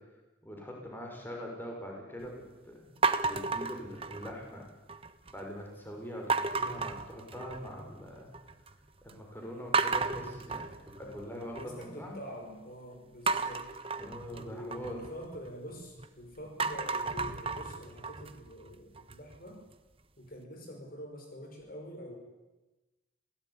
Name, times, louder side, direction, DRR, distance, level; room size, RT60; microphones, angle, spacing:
voice 1, 0.4-3.0 3.3-4.7 5.3-8.3 9.0-12.2 14.0-15.0, equal, 10° left, 0 dB, 6.2 m, -43 dB
sound 1, 3.0-4.5 4.9-5.4 6.3-7.8 8.1-8.7 9.1-9.2 9.7-11.9 13.3-16.1 16.4-19.4, right 4 dB, 30° right, 1.2 m, -33 dB
voice 2, 11.0-13.7 14.3-19.6 20.2-22.1, equal, 50° left, 3 dB, 5.6 m, -46 dB
28.5 x 17.0 x 10.0 m, 1.1 s
head